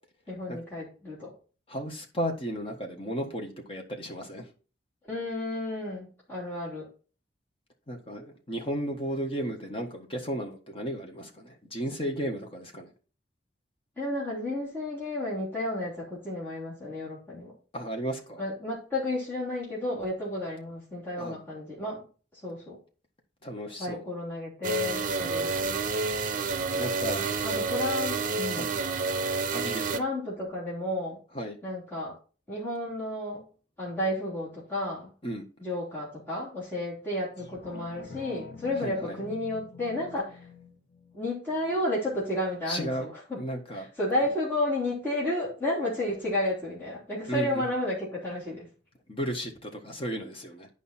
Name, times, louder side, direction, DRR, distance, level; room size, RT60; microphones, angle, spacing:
voice 1, 0.3-1.3 5.1-6.9 14.0-17.5 18.4-22.0 22.4-22.8 23.8-25.8 27.4-28.7 29.9-31.2 31.6-32.1 32.5-33.4 33.8-35.1 35.6-40.4 41.1-42.9 43.3-43.4 44.0-48.7, left 1 dB, 10° left, 3.4 m, -32 dB
voice 2, 1.7-4.5 7.9-12.9 17.7-18.4 21.1-21.4 23.4-24.0 26.7-27.3 28.5-28.8 29.5-30.1 31.3-31.6 35.2-35.4 38.8-39.2 42.7-43.9 47.3-47.7 49.1-50.7, equal, 30° left, 1.6 m, -34 dB
sound 1, 24.6-30.0, right 4 dB, 50° right, 0.6 m, -29 dB
sound 2, 37.4-42.4 42.8-42.9, left 4 dB, 75° left, 1.6 m, -47 dB
9.5 x 5.1 x 4.3 m
head